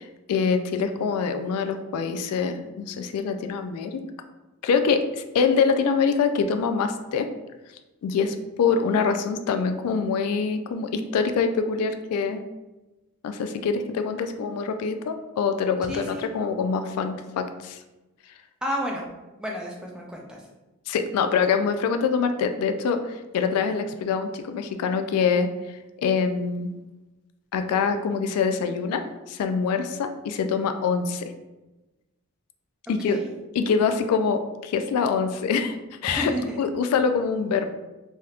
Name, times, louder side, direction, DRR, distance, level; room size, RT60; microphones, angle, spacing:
voice 1, 0.0-4.0 4.6-7.3 8.0-12.4 13.2-17.8 20.9-25.5 26.0-26.7 27.5-31.3 32.9-33.2 33.5-35.8 36.0-37.7, left 5 dB, 90° left, 12 dB, 0.3 m, -25 dB
voice 2, 15.9-16.3 18.6-19.0 19.4-20.4 33.0-33.3 36.0-36.6, equal, 5° right, -1 dB, 0.3 m, -31 dB
3.3 x 2.7 x 2.3 m, 1.1 s
head